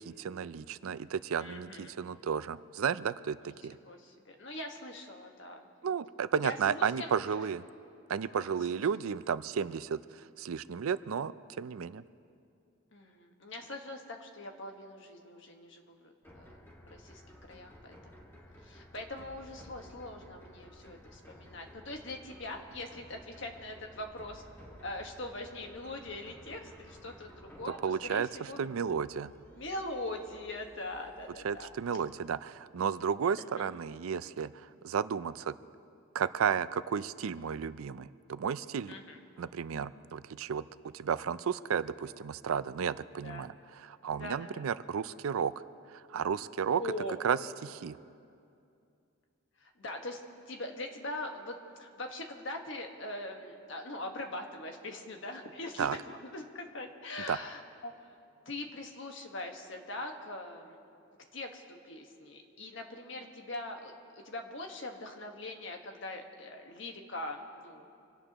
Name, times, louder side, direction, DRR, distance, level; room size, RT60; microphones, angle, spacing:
voice 1, 0.0-3.8 5.8-7.6 8.1-12.0 27.8-28.3 28.6-29.3 31.4-34.5 34.8-35.6 36.1-38.9 39.4-40.7 40.9-45.5 45.9-46.8 47.2-48.0 55.8-56.0 57.3-57.4, right 7 dB, 75° right, 15 dB, 0.4 m, -33 dB
voice 2, 1.4-2.0 3.4-3.5 3.8-5.7 6.4-7.1 8.2-8.8 12.9-16.6 16.9-17.2 17.5-18.2 18.6-24.4 24.8-28.7 29.5-31.7 33.4-33.7 38.9-39.2 43.2-43.5 44.1-44.7 46.8-47.2 49.6-50.2 50.5-60.8 61.3-63.9 64.2-67.9, left 2 dB, 60° left, 3 dB, 1.5 m, -42 dB
sound 1, 16.2-31.9, equal, 10° left, 1.7 m, -55 dB
25.5 x 17.5 x 3.0 m, 2.5 s
head